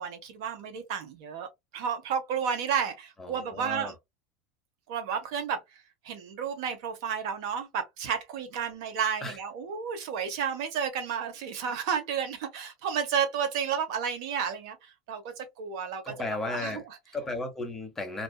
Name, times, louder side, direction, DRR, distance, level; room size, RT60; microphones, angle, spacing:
voice 1, 0.0-4.0 4.9-5.6 6.0-17.0, right 7 dB, 70° right, 0.8 m, -32 dB
voice 2, 3.2-3.9 9.2-9.4 16.1-16.8 17.1-18.2, left 2 dB, 15° left, 0.8 m, -34 dB
2.5 x 2.3 x 2.2 m
supercardioid pair, 130°, 3 cm